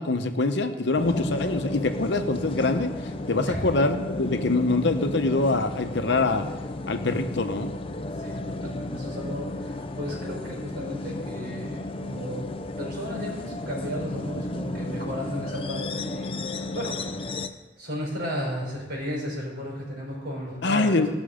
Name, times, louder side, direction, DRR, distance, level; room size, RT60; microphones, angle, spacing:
voice 1, 0.0-2.9 3.3-6.5 6.9-7.7 20.6-21.1, left 3 dB, 70° left, 7 dB, 0.9 m, -24 dB
sound 1, 1.0-17.5, left 2 dB, 30° left, 0.6 m, -33 dB
voice 2, 8.2-12.5 12.8-17.4 17.8-21.1, equal, 60° right, -2 dB, 4.8 m, -34 dB
17.5 x 6.2 x 5.1 m, 1.1 s
head